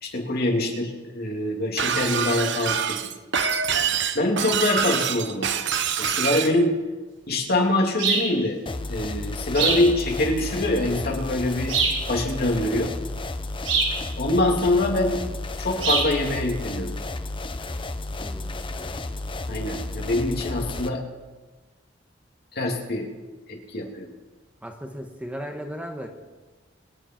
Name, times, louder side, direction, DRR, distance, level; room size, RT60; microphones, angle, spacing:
voice 1, 0.0-3.0 4.1-5.5 6.0-6.7 7.3-8.6 8.9-11.7 12.1-12.9 14.2-15.2 15.6-16.9 19.5-21.0 22.5-23.1 23.5-24.1, left 1 dB, 55° left, 1 dB, 2.7 m, -24 dB
Shatter, 1.8-6.5, right 7 dB, 65° right, 0.9 m, -25 dB
sound 1, 8.0-8.3 9.5-9.9 11.7-12.0 13.7-14.0 15.8-16.1, right 4 dB, 85° right, 4.8 m, -23 dB
sound 2, 8.7-20.9, left 2 dB, 25° left, 0.8 m, -32 dB
voice 2, 18.2-18.8 24.6-26.1, equal, 10° right, 3 dB, 1.3 m, -36 dB
25.5 x 9.7 x 4.6 m, 1.2 s
head